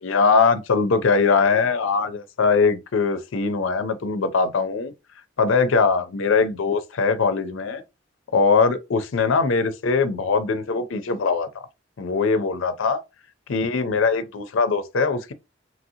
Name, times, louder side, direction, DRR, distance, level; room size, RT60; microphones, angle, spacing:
voice 1, 0.0-4.9 5.4-7.8 8.3-11.5 12.0-13.0 13.5-15.3, left 4 dB, 80° left, 0.5 m, -21 dB
3.0 x 2.6 x 2.7 m
head